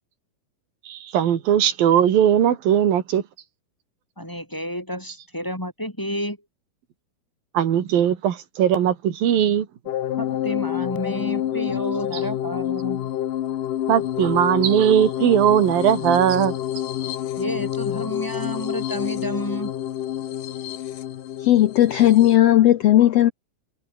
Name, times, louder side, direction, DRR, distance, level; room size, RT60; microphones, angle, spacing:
voice 1, 0.9-3.2 7.5-9.7 13.9-16.6, right 10 dB, 80° right, 3.8 m, -19 dB
voice 2, 4.2-6.4 10.2-13.1 17.3-19.7, equal, 5° left, 4.8 m, -30 dB
sound 1, 9.9-22.4, left 11 dB, 70° left, 3.0 m, -28 dB
voice 3, 21.4-23.3, left 13 dB, 85° left, 1.4 m, -16 dB
omnidirectional pair, 4.1 m